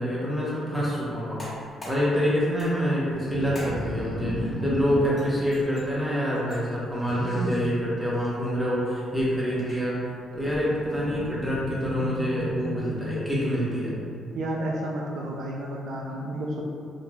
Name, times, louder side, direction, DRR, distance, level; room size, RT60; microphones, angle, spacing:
voice 1, 0.0-1.4 1.9-10.0 10.3-13.9, equal, 5° right, -7 dB, 0.8 m, -26 dB
sound 1, 1.2-12.9, equal, 25° left, 1.3 m, -48 dB
sound 2, 3.1-5.2 7.1-7.8 10.4-13.8, left 1 dB, 50° left, 0.4 m, -34 dB
voice 2, 14.3-16.6, right 1 dB, 70° right, -2 dB, 0.3 m, -31 dB
3.1 x 2.4 x 2.3 m, 2.3 s
cardioid pair, 90°, 0 cm